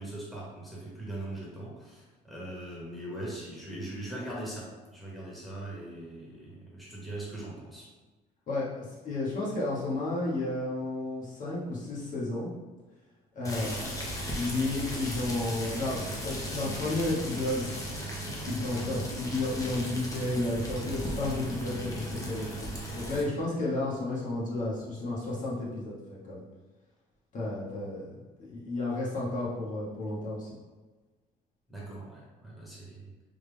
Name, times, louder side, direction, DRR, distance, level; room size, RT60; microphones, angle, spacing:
voice 1, 0.0-7.9 31.7-33.1, right 1 dB, ahead, -7 dB, 1.2 m, -40 dB
voice 2, 8.5-12.5 13.3-14.0 14.3-17.7 18.4-26.4 27.3-28.0 28.4-30.5, left 2 dB, 50° left, -6 dB, 1.2 m, -32 dB
sound 1, 13.4-23.2, right 1 dB, 20° left, 0.8 m, -36 dB
3.6 x 2.5 x 3.5 m, 1.2 s
cardioid pair, 110°, 17 cm